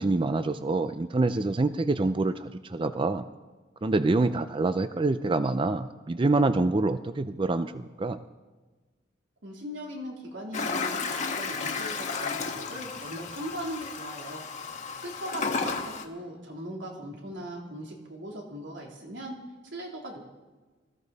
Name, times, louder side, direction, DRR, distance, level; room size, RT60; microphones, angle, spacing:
voice 1, 0.0-3.3 3.8-8.2, right 2 dB, 30° right, 11 dB, 0.4 m, -26 dB
voice 2, 9.4-14.4 15.0-19.4 19.7-20.2, equal, 90° right, -1 dB, 3.3 m, -39 dB
Toilet flush, 10.5-16.0, left 4 dB, 40° left, 1.2 m, -33 dB
20.5 x 14.0 x 4.1 m, 1.3 s
head